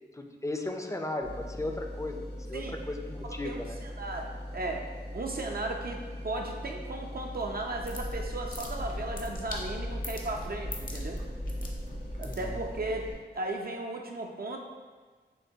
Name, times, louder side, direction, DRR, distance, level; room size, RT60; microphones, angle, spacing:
voice 1, 0.1-2.2 2.5-3.8 12.3-12.6, left 2 dB, 15° left, 4 dB, 0.4 m, -36 dB
sound 1, 1.2-13.1, left 1 dB, 75° left, 1.4 m, -41 dB
voice 2, 3.2-4.8 5.1-6.0 6.2-11.2 12.2-13.1 13.3-14.6, right 2 dB, 55° right, 2 dB, 0.4 m, -36 dB
sound 2, 7.4-12.8, equal, 50° left, 0.7 m, -38 dB
6.5 x 2.2 x 2.7 m, 1.4 s
wide cardioid pair, 50°, 19 cm